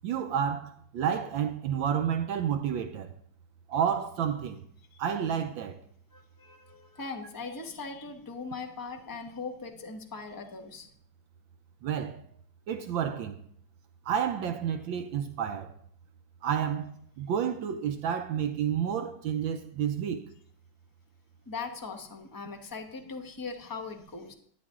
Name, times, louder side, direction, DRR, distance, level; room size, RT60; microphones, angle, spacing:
voice 1, 0.0-3.1 3.7-4.6 5.0-5.8 11.8-12.2 12.7-13.4 14.0-15.7 16.4-20.3, right 8 dB, 70° right, 1.4 m, -30 dB
voice 2, 6.1-10.9 21.5-24.3, left 4 dB, 20° left, 0.6 m, -40 dB
12.5 x 9.6 x 3.7 m
omnidirectional pair, 2.3 m